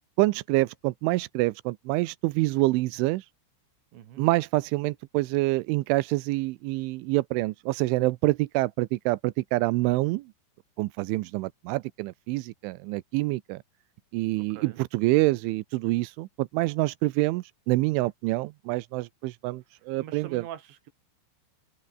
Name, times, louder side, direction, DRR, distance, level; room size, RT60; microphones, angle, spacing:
voice 1, 0.2-3.3 4.2-10.3 10.8-13.6 14.1-20.4, right 21 dB, 80° right, 3.0 m, -26 dB
voice 2, 3.9-4.2 14.4-14.8 20.0-20.9, right 11 dB, 65° right, 4.4 m, -43 dB
open air
omnidirectional pair, 5.9 m